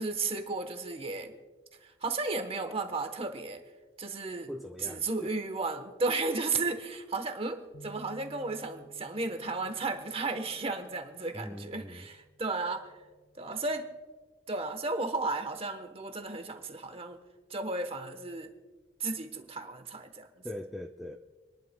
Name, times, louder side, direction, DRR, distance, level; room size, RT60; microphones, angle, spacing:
voice 1, 0.0-1.3 1.8-3.6 4.0-4.5 4.8-12.9 13.3-13.9 14.5-17.2 17.5-18.5 19.0-20.4, right 3 dB, 30° right, 7 dB, 1.0 m, -34 dB
voice 2, 4.5-5.4 11.3-12.1 20.4-21.2, left 1 dB, ahead, 2 dB, 0.4 m, -41 dB
sound 1, 7.7-14.0, right 1 dB, 70° left, 2.5 m, -57 dB
28.5 x 11.0 x 2.2 m, 1.3 s
head